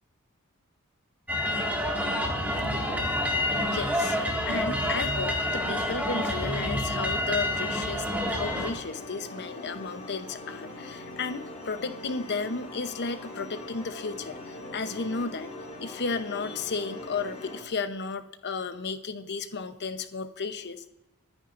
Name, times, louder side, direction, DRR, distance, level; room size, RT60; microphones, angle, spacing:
sound 1, 1.3-8.7, left 1 dB, 5° right, 1.9 m, -28 dB
voice 1, 3.7-4.2 4.5-15.5 15.8-20.9, left 4 dB, 50° left, 10 dB, 0.8 m, -33 dB
sound 2, 8.3-17.6, left 2 dB, 35° left, 2.2 m, -42 dB
29.5 x 9.9 x 2.6 m, 0.93 s
head